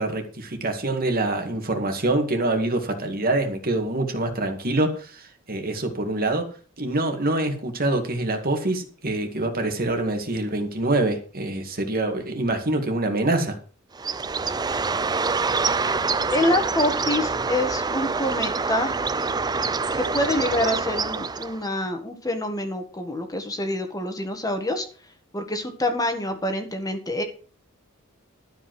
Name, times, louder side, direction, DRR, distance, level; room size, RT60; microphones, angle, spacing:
voice 1, 0.0-6.5 6.8-13.6, right 2 dB, 45° right, 5 dB, 2.2 m, -25 dB
Bird, 13.9-21.7, right 4 dB, 20° right, 0.5 m, -26 dB
voice 2, 16.3-19.0 19.9-24.8 25.3-27.2, left 1 dB, 15° left, 6 dB, 1.6 m, -26 dB
12.5 x 5.4 x 7.8 m, 0.40 s
head